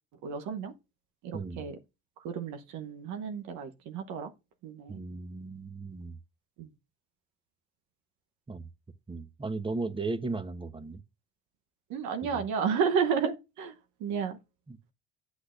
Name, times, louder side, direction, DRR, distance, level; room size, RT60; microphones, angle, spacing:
voice 1, 0.2-0.7 1.2-1.7 2.2-4.3 4.6-5.0 6.6-6.7 11.9-13.7 14.0-14.4, right 6 dB, 75° right, 1.0 m, -32 dB
voice 2, 1.3-1.7 4.9-6.2 8.5-8.7 9.1-11.0 12.3-12.4 14.7-14.8, right 3 dB, 15° right, 1.0 m, -36 dB
9.8 x 8.3 x 2.5 m
supercardioid pair, 70°, 30 cm